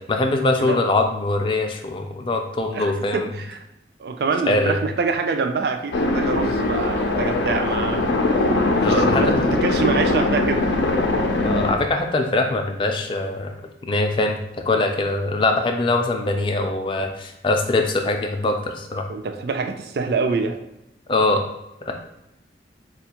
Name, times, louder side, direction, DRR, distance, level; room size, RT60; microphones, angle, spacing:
voice 1, 0.1-3.3 4.5-4.8 8.8-9.5 11.4-13.5 13.9-14.4 14.6-19.0 21.1-21.4 21.8-21.9, left 2 dB, 30° left, 4 dB, 0.3 m, -22 dB
voice 2, 2.7-3.6 4.0-8.1 8.7-10.7 19.1-20.6, right 4 dB, 60° right, 6 dB, 0.3 m, -25 dB
sound 1, 5.9-11.7, left 2 dB, 90° left, 0.5 m, -21 dB
4.1 x 2.3 x 2.8 m, 0.88 s
head